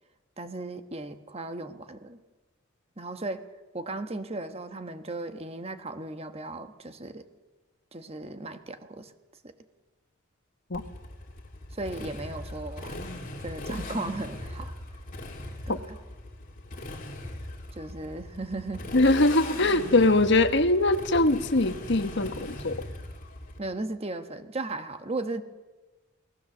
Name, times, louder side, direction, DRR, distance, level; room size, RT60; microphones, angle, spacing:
voice 1, 0.4-2.2 3.0-3.5 3.7-7.3 7.9-9.1 9.4-9.5 11.7-13.2 13.4-14.8 15.7-16.0 17.7-18.8 23.6-25.4, right 2 dB, 30° right, 8 dB, 1.3 m, -36 dB
Motorcycle, 10.7-23.6, left 1 dB, 40° left, 3.1 m, -39 dB
voice 2, 18.9-22.8, left 2 dB, 55° left, 9 dB, 1.3 m, -22 dB
28.5 x 19.0 x 7.3 m, 1.2 s
head